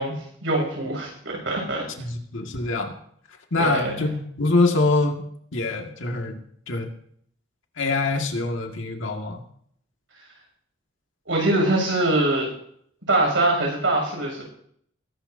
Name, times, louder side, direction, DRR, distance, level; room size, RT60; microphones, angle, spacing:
voice 1, 0.0-1.8 3.6-3.9 11.3-12.5 13.1-14.4, right 2 dB, 70° right, -1 dB, 6.9 m, -23 dB
voice 2, 2.0-3.0 3.5-5.2 5.5-6.4 6.7-6.9 7.8-9.4, left 2 dB, 75° left, 3 dB, 2.0 m, -24 dB
21.0 x 12.0 x 2.7 m, 0.65 s
head